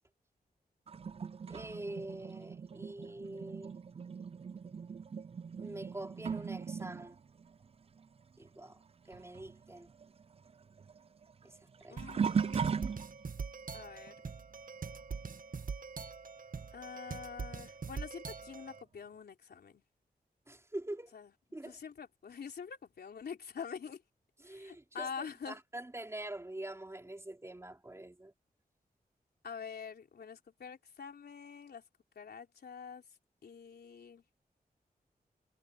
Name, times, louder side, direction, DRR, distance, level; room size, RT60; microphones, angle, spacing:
sound 1, 0.9-8.9 9.1-13.5 14.1-14.4 16.6-16.7 17.6-17.7, right 6 dB, 40° right, 0.4 m, -39 dB
voice 1, 1.5-3.8 5.6-7.2 8.4-8.8 9.1-9.9 11.4-12.0 20.5-21.1 21.5-21.8 24.4-28.3, right 1 dB, 15° right, 4.4 m, -45 dB
voice 2, 11.9-13.0 13.7-14.2 16.7-19.8 21.1-21.3 21.6-24.0 24.4-25.6 29.4-31.8 32.2-33.0 33.4-34.2, left 6 dB, 90° left, 3.8 m, -46 dB
sound 2, 12.0-18.8, right 5 dB, 60° right, 1.6 m, -43 dB
wide cardioid pair, 100°, 16 cm